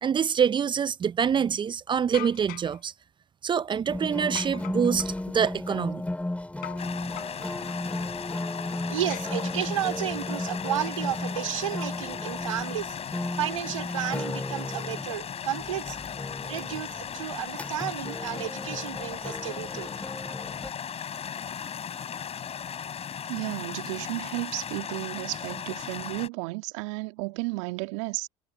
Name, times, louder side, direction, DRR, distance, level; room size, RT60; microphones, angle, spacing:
voice 1, 0.0-2.9 3.4-6.0, right 7 dB, 30° right, 0.5 m, -26 dB
sound 1, 2.1-2.8 4.4-5.2 6.6-6.9 7.2-7.8 9.1-9.9, left 18 dB, 60° left, 7.1 m, -42 dB
sound 2, 3.9-20.7, left 1 dB, 10° left, 5.1 m, -35 dB
sound 3, 6.8-26.3, left 8 dB, 40° left, 7.3 m, -37 dB
voice 2, 8.9-13.0 13.4-16.0 16.4-19.9, right 11 dB, 85° right, 3.8 m, -32 dB
voice 3, 23.3-28.3, right 25 dB, 70° right, 2.1 m, -33 dB
hypercardioid pair, 70°, 16 cm